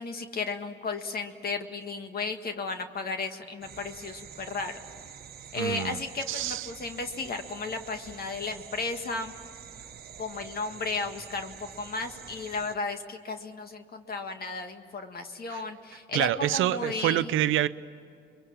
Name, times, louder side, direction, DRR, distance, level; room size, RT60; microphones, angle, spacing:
voice 1, 0.0-4.7 5.5-9.3 10.2-17.3, left 3 dB, 50° left, 6 dB, 1.8 m, -34 dB
sound 1, 3.6-12.8, right 8 dB, 50° right, 1.1 m, -47 dB
voice 2, 5.5-6.0 6.3-6.7 15.5-15.6 16.1-17.7, right 13 dB, 85° right, 14 dB, 0.8 m, -27 dB
28.0 x 23.0 x 7.4 m, 2.3 s
cardioid pair, 90°, 20 cm